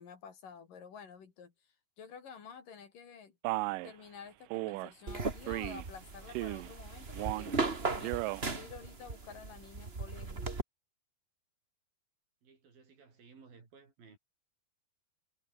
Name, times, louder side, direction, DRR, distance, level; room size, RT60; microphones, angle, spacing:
voice 1, 0.0-3.4 3.8-7.6 7.9-10.5, left 6 dB, 60° left, 4.7 m, -50 dB
Male speech man speaking, 3.4-3.9 4.5-4.9 5.5-5.9 6.3-6.7 7.1-7.6 8.0-8.4, right 22 dB, 90° right, 1.9 m, -35 dB
sound 1, 5.1-10.6, right 3 dB, 25° right, 1.5 m, -38 dB
voice 2, 12.4-14.2, right 5 dB, 70° right, 7.1 m, -58 dB
omnidirectional pair, 4.4 m